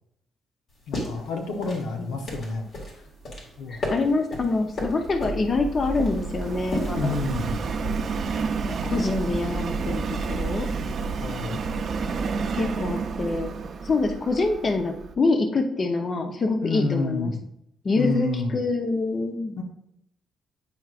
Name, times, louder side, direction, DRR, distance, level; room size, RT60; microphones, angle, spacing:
sound 1, 0.7-8.2, left 1 dB, 60° left, 2.0 m, -35 dB
voice 1, 0.9-2.7 3.6-3.8 6.9-7.6 11.2-11.6 16.6-17.3 18.0-18.5 19.6-19.7, left 3 dB, 90° left, 3 dB, 0.9 m, -29 dB
voice 2, 3.7-7.1 8.7-10.7 12.5-13.6 13.8-17.3 17.8-19.6, left 3 dB, 40° left, 5 dB, 0.7 m, -26 dB
Subway metro underground, 3.8-15.1, right 4 dB, 55° right, 0.6 m, -30 dB
8.7 x 4.7 x 2.5 m, 0.76 s
cardioid pair, 90°, 0 cm